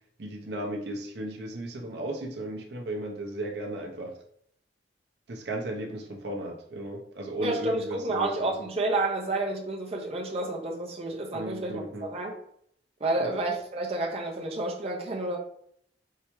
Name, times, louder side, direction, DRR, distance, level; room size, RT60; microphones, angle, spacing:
voice 1, 0.2-4.2 5.3-8.7 11.3-12.1 13.2-13.4, right 1 dB, 65° right, 1 dB, 0.7 m, -35 dB
voice 2, 7.4-12.3 13.0-15.4, right 2 dB, 35° right, -1 dB, 0.7 m, -30 dB
4.6 x 3.4 x 3.0 m, 0.68 s
head